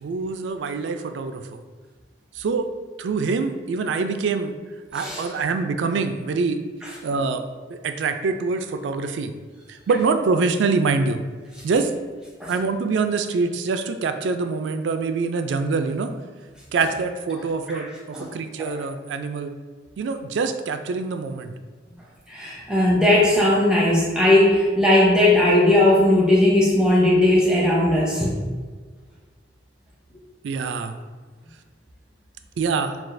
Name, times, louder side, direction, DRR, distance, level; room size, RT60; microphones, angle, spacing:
voice 1, 0.0-1.6 2.3-2.7 3.0-4.5 4.9-6.6 7.0-7.4 7.7-9.3 9.7-11.2 11.6-11.9 12.5-16.1 16.7-19.5 20.0-21.5 30.4-31.0 32.6-32.9, right 4 dB, 80° right, 8 dB, 0.3 m, -25 dB
voice 2, 22.3-28.4, left 1 dB, 5° right, -5 dB, 0.7 m, -18 dB
5.9 x 2.3 x 2.5 m, 1.4 s
head